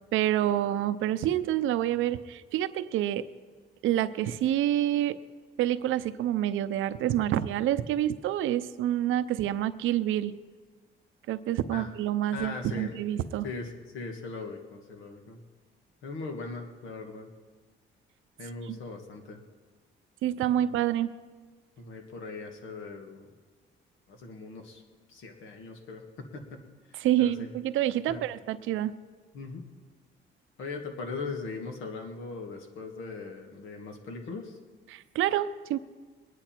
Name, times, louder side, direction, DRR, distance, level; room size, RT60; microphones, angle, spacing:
voice 1, 0.1-3.3 3.8-5.2 5.6-10.3 11.3-13.5 18.7-18.8 20.2-21.1 27.0-28.9 34.9-35.8, right 12 dB, 85° right, 13 dB, 0.6 m, -27 dB
voice 2, 12.3-12.9 13.4-15.4 16.0-17.3 18.4-19.4 20.6-20.7 21.8-23.3 24.1-24.8 25.1-26.6 26.9-27.5 28.1-28.2 29.3-29.7 30.6-34.6, left 3 dB, 85° left, 3 dB, 1.9 m, -40 dB
21.5 x 10.0 x 4.5 m, 1.4 s
cardioid pair, 90°, 20 cm